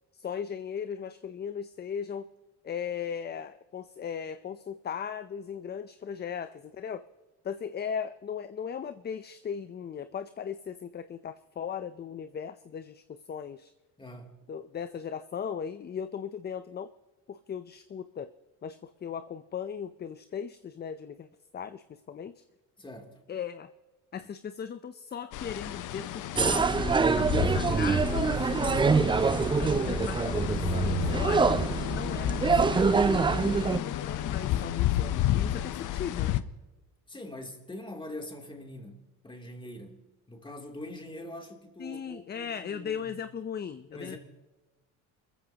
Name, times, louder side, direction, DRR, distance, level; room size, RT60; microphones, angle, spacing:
voice 1, 0.1-2.3 2.6-7.0 7.4-13.7 14.5-16.9 17.3-18.3 18.6-21.3 21.5-22.4 23.3-23.7 24.1-29.1 29.6-31.5 31.9-36.4 41.8-44.2, left 7 dB, 30° left, 0.6 m, -38 dB
voice 2, 14.0-14.4 22.8-23.2 37.1-40.0 40.3-43.1 43.9-44.2, left 1 dB, 15° left, 3.1 m, -43 dB
sound 1, 25.3-36.4, left 12 dB, 65° left, 0.9 m, -31 dB
sound 2, 26.4-33.8, right 5 dB, 15° right, 0.4 m, -25 dB
28.5 x 14.5 x 2.9 m
cardioid pair, 100°, 33 cm